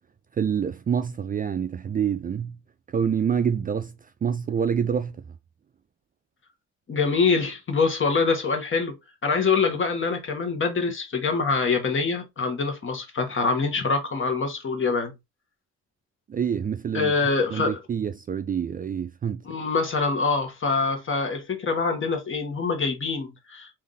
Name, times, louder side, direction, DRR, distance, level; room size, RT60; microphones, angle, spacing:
voice 1, 0.4-2.6 2.9-3.9 4.2-5.2 16.3-17.1 17.5-19.4, right 7 dB, 30° right, 0.4 m, -26 dB
voice 2, 6.9-15.1 16.9-17.8 19.4-23.7, left 4 dB, 40° left, 1.5 m, -25 dB
3.4 x 2.7 x 3.9 m
cardioid pair, 90°, 30 cm